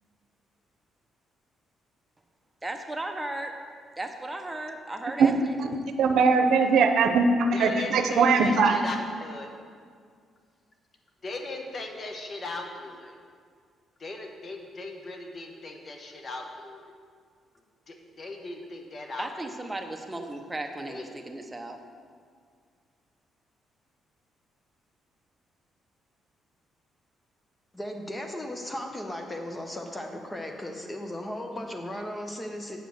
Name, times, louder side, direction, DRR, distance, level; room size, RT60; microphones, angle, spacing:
voice 1, 2.6-3.5 4.0-5.6 19.2-21.8, right 2 dB, 15° right, 4 dB, 0.9 m, -35 dB
voice 2, 6.0-8.8, right 4 dB, 75° right, 6 dB, 0.7 m, -21 dB
voice 3, 7.5-9.0 9.2-9.5 11.2-13.2 14.0-16.9 17.9-19.3 20.9-21.0, left 2 dB, 40° left, 3 dB, 1.2 m, -38 dB
voice 4, 27.7-32.8, left 1 dB, 20° left, 3 dB, 1.0 m, -36 dB
8.0 x 5.0 x 6.5 m, 2.1 s
cardioid pair, 90°, 0 cm